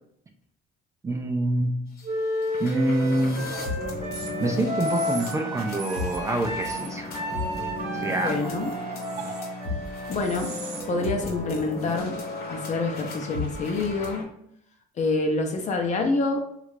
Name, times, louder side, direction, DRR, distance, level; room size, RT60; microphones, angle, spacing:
voice 1, 1.0-1.8 2.6-3.5 4.4-7.1 7.9-8.5 9.2-9.4, right 1 dB, 20° right, 2 dB, 0.4 m, -26 dB
sound 1, 2.0-2.1 2.3-14.2, left 3 dB, 65° left, 1.0 m, -35 dB
Wind instrument woodwind instrument, 2.0-11.8, equal, 50° right, 0.9 m, -33 dB
sound 2, 4.1-4.3 4.8-5.3 5.8-6.2 6.6-6.9 7.4-8.0 9.0-9.5 10.2-10.8, right 6 dB, 80° right, 0.7 m, -39 dB
voice 2, 8.1-8.7 10.1-10.5 10.9-12.2 12.5-14.3 15.0-16.4, left 3 dB, 45° left, 3 dB, 0.7 m, -27 dB
3.2 x 2.4 x 3.2 m, 0.73 s
cardioid pair, 110°, 17 cm